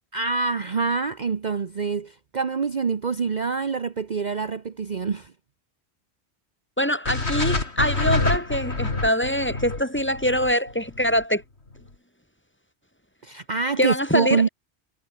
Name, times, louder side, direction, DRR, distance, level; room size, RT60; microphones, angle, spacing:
voice 1, 0.1-5.3 13.2-14.5, right 5 dB, 45° right, 1.0 m, -26 dB
voice 2, 6.8-11.4 13.8-14.5, equal, 10° left, 3.6 m, -24 dB
sound 1, 7.1-11.2, left 3 dB, 75° left, 3.7 m, -26 dB
omnidirectional pair, 1.1 m